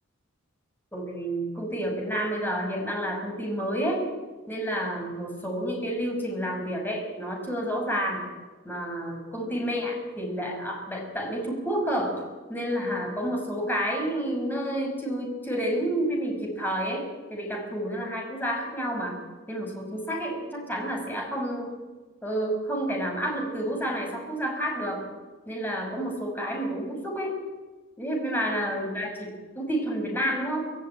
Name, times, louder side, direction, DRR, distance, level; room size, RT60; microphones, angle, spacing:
voice 1, 0.9-4.0 4.5-8.2 8.6-12.2 12.5-19.2 19.5-21.7 22.2-25.0 25.5-27.4 28.0-29.3 29.6-30.7, equal, 10° left, 1 dB, 5.8 m, -30 dB
25.0 x 15.0 x 9.1 m, 1.3 s
head